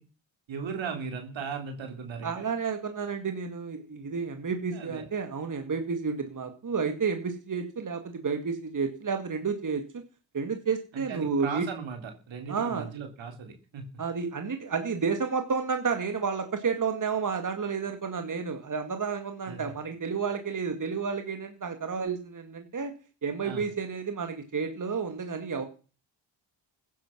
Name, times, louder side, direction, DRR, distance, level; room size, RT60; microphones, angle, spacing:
voice 1, 0.5-2.5 4.7-5.1 10.9-13.9 19.5-19.7 23.4-23.7, right 6 dB, 80° right, 4 dB, 3.7 m, -37 dB
voice 2, 2.2-9.8 10.3-11.7 12.5-12.9 14.0-22.9 23.2-25.6, right 5 dB, 45° right, 6 dB, 2.2 m, -31 dB
15.5 x 10.5 x 6.1 m, 0.37 s
cardioid pair, 70°, 45 cm